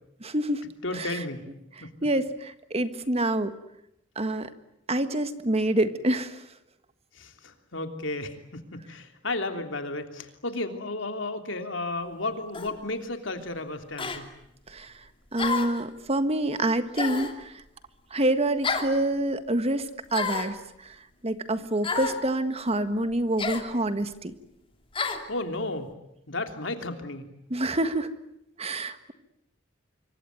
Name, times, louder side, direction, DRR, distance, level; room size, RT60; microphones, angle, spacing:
voice 1, 0.2-0.6 0.9-1.2 1.8-3.5 4.1-4.5 4.9-6.4 14.7-14.9 15.3-17.6 18.1-21.0 21.2-24.3 27.5-28.1 28.6-29.1, right 1 dB, 30° right, 11 dB, 1.6 m, -27 dB
voice 2, 0.8-1.4 1.8-1.9 7.1-14.3 25.3-25.9 26.3-27.3, left 2 dB, 75° left, 6 dB, 3.3 m, -33 dB
Girl Taking Damage, 12.5-12.8 14.0-14.2 15.4-15.8 17.0-17.4 18.6-18.9 20.1-20.5 21.8-22.2 23.4-23.7 24.9-25.2, left 4 dB, 30° left, 2.7 m, -30 dB
26.0 x 24.5 x 9.4 m, 0.80 s
head